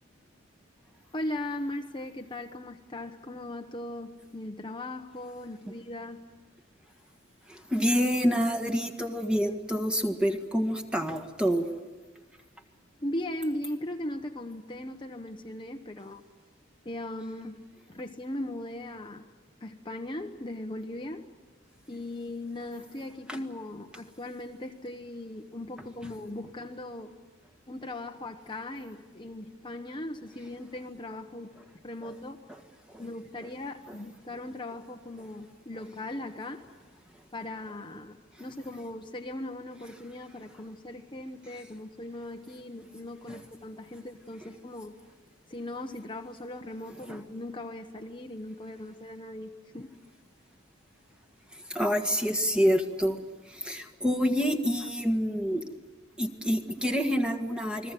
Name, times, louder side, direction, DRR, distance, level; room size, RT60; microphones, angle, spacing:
voice 1, 1.1-6.2 13.0-16.2 16.8-17.6 17.9-19.3 19.6-21.3 21.9-27.1 27.7-31.5 31.8-32.4 33.0-36.6 37.3-45.0 45.5-49.5 49.7-49.9, left 1 dB, 25° left, 4 dB, 1.0 m, -38 dB
voice 2, 7.5-11.7 23.3-23.4 32.0-32.1 32.9-33.0 43.3-43.4 47.1-47.2 51.5-55.6 56.2-57.9, equal, 5° right, 5 dB, 1.8 m, -27 dB
29.5 x 21.5 x 7.7 m, 1.3 s
head